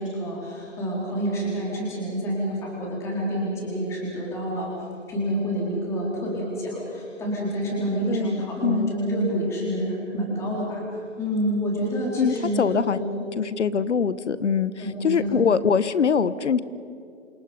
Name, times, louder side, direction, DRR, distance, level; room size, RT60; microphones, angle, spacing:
voice 1, 0.0-4.7 5.1-10.8 11.2-12.6 13.0-13.1 14.8-15.4, right 1 dB, 5° left, -4 dB, 4.0 m, -28 dB
voice 2, 8.1-8.9 12.2-13.0 13.4-14.7 15.0-16.6, left 6 dB, 65° left, 15 dB, 1.2 m, -23 dB
28.0 x 27.5 x 5.2 m, 2.6 s
hypercardioid pair, 170°, 37 cm